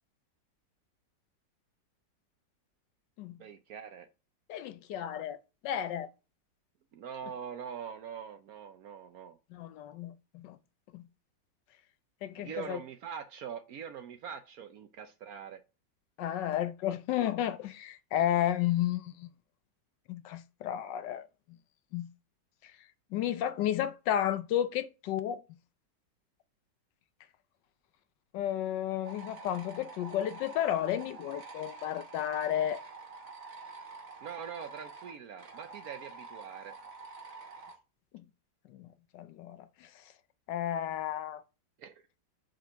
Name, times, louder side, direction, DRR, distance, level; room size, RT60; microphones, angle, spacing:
voice 1, 3.4-4.1 6.9-9.4 12.4-15.6 34.2-36.8 41.8-42.0, right 7 dB, 65° right, 1.0 m, -43 dB
voice 2, 4.5-5.4 5.6-6.1 9.5-10.6 10.9-11.0 12.2-12.8 16.2-19.3 20.1-21.3 21.9-22.1 22.6-22.7 23.1-25.4 28.3-32.8 38.1-38.2 38.7-38.9 39.1-39.9 40.5-41.4, left 11 dB, 75° left, 1.2 m, -32 dB
sound 1, 29.0-37.7, right 4 dB, 50° right, 1.7 m, -47 dB
5.1 x 4.5 x 5.6 m
omnidirectional pair, 2.0 m